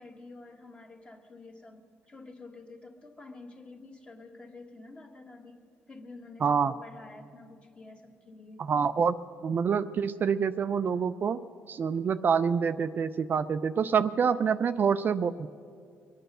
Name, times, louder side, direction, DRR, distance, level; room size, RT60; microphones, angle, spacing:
voice 1, 0.0-5.6 5.9-8.6, left 3 dB, 20° left, 3 dB, 1.6 m, -49 dB
voice 2, 6.4-6.7 8.6-9.1 9.4-11.4 11.7-15.5, right 6 dB, 40° right, 10 dB, 0.4 m, -26 dB
23.0 x 9.1 x 6.7 m, 2.3 s
cardioid pair, 120°, 5 cm